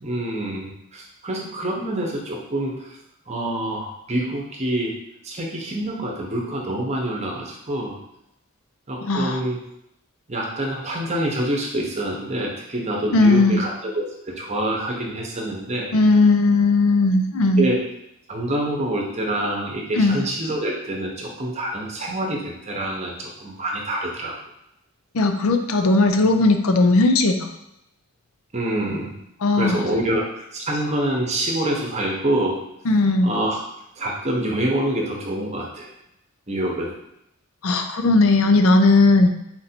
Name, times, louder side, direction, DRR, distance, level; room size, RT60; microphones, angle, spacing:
voice 1, 0.0-3.0 3.3-4.9 5.2-8.0 8.9-9.6 10.3-15.9 17.6-17.8 18.3-24.3 28.5-29.1 29.5-32.6 33.2-33.6 34.0-35.9 36.5-36.9, right 1 dB, 30° right, -1 dB, 0.8 m, -26 dB
voice 2, 9.0-9.4 13.1-13.6 15.9-17.6 20.0-20.2 25.1-27.5 29.4-29.8 32.9-33.3 37.6-39.3, left 2 dB, 75° left, 6 dB, 0.5 m, -17 dB
4.3 x 2.6 x 4.3 m, 0.81 s
head